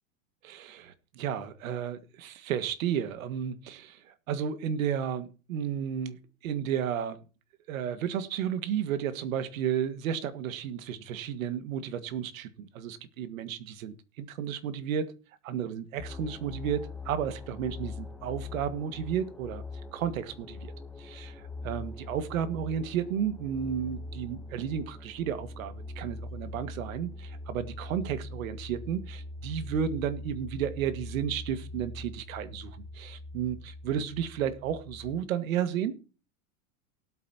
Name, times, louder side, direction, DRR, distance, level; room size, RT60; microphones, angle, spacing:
voice 1, 0.4-7.2 7.7-15.1 15.4-19.6 19.9-20.7 21.0-36.0, right 8 dB, 75° right, 1.9 m, -33 dB
sound 1, 16.0-35.2, left 2 dB, 5° left, 0.9 m, -42 dB
18.5 x 8.6 x 2.9 m
supercardioid pair, 150°, 41 cm